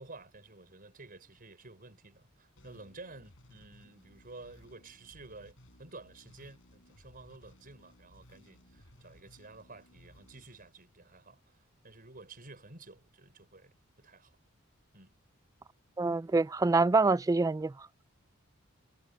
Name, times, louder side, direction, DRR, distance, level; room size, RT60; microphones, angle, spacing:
voice 1, 0.0-11.6 11.8-14.4 14.9-15.1, right 3 dB, 45° right, 5.5 m, -52 dB
sound 1, 2.6-11.4, left 1 dB, 65° left, 6.5 m, -60 dB
voice 2, 16.0-17.7, right 3 dB, 15° right, 0.3 m, -26 dB
head